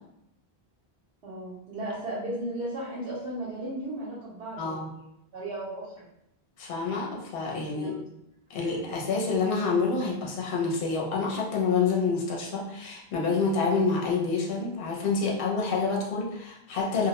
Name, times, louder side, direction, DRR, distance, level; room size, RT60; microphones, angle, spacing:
voice 1, 1.2-5.0 5.3-6.0 7.7-8.0, right 1 dB, 80° right, -8 dB, 0.9 m, -35 dB
voice 2, 4.6-4.9 6.6-7.9 8.5-17.1, left 4 dB, 65° left, -2 dB, 0.8 m, -27 dB
2.2 x 2.1 x 2.8 m, 0.80 s
omnidirectional pair, 1.0 m